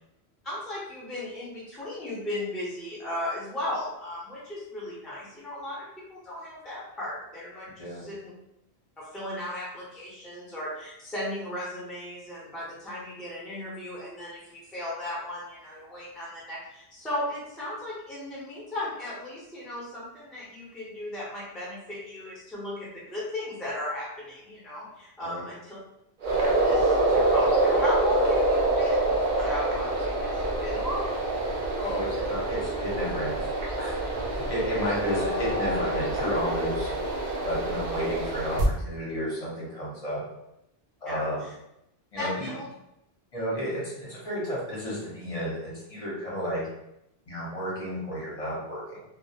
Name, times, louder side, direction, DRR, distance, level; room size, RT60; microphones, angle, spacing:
voice 1, 0.4-8.3 9.0-25.8 26.4-31.1 34.8-35.0 41.0-41.5 42.2-42.7 43.5-43.6, left 1 dB, ahead, -7 dB, 0.5 m, -36 dB
sound 1, 26.2-38.6, right 2 dB, 55° right, 0.6 m, -26 dB
voice 2, 31.7-33.5 33.8-36.9 37.4-40.2 41.0-41.4 42.1-42.5 43.3-43.8 44.1-46.6 47.3-49.0, equal, 40° left, -7 dB, 0.8 m, -32 dB
2.3 x 2.0 x 2.7 m, 0.83 s
omnidirectional pair, 1.1 m